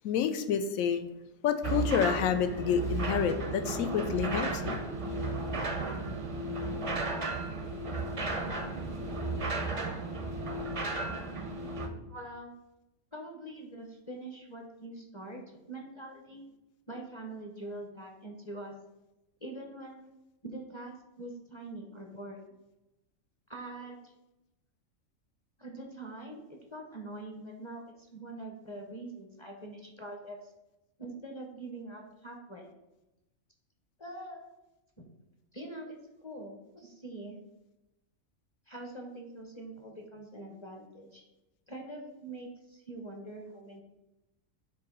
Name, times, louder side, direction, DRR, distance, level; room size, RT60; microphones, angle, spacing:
voice 1, 0.0-1.0 1.4-4.8, left 8 dB, 85° left, 8 dB, 1.0 m, -29 dB
sound 1, 1.6-11.9, right 3 dB, 45° right, 0.4 m, -34 dB
voice 2, 12.1-12.5 13.1-16.4 16.9-18.7 19.4-20.1 20.4-22.6 23.5-24.1 25.6-26.4 26.7-30.5 31.0-32.7 34.0-34.5 35.0-35.1 35.5-36.0 36.2-37.4 38.7-41.2 41.7-43.8, right 2 dB, 25° left, 1 dB, 0.7 m, -44 dB
7.5 x 2.7 x 5.3 m, 0.95 s
omnidirectional pair, 1.4 m